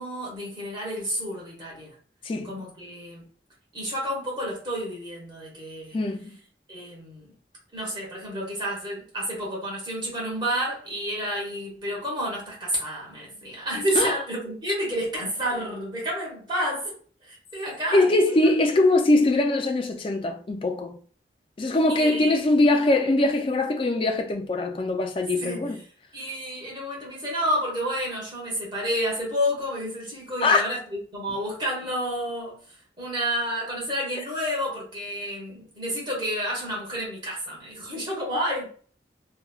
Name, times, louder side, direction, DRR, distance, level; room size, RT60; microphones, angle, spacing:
voice 1, 0.0-1.9 2.4-3.2 3.7-6.0 6.7-7.3 7.7-16.9 17.2-18.4 21.9-22.3 25.4-25.7 26.1-32.6 33.0-38.7, equal, 25° right, 1.1 m, -30 dB
voice 2, 5.9-6.4 14.0-14.2 17.9-21.0 21.6-25.8 30.4-30.6, left 2 dB, 30° left, 0.4 m, -22 dB
3.1 x 2.2 x 2.3 m
head